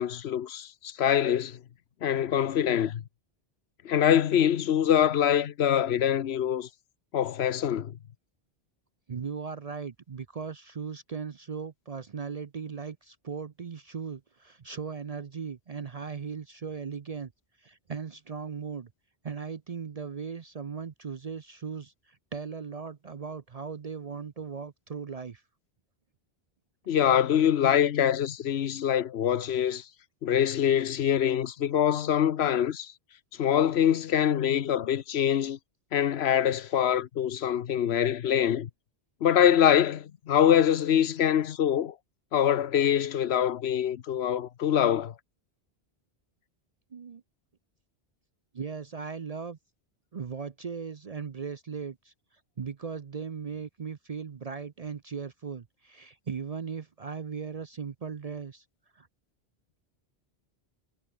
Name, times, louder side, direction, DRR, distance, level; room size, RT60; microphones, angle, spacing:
voice 1, 0.0-1.6 2.0-3.0 3.8-6.7 7.1-7.9 26.9-29.8 30.2-32.9 33.4-35.6 35.9-38.7 39.2-41.9 42.3-45.1, left 9 dB, 80° left, 1.0 m, -24 dB
voice 2, 9.1-17.3 17.6-18.9 19.2-25.4 46.9-47.2 48.5-49.6 50.1-52.1 52.6-58.6 58.9-59.1, right 6 dB, 45° right, 0.7 m, -38 dB
omnidirectional pair, 1.1 m